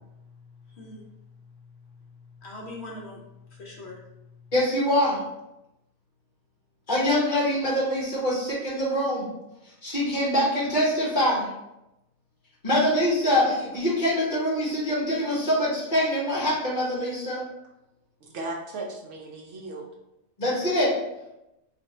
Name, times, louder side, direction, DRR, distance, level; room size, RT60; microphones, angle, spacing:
voice 1, 0.0-4.5, left 2 dB, 60° left, -2 dB, 1.0 m, -44 dB
voice 2, 4.5-5.2 6.9-9.3 9.8-11.5 12.6-17.5 20.4-20.9, left 1 dB, 40° left, -6 dB, 1.3 m, -24 dB
voice 3, 18.2-19.9, right 2 dB, 70° right, 0 dB, 0.9 m, -36 dB
3.3 x 2.6 x 4.0 m, 0.91 s
omnidirectional pair, 1.4 m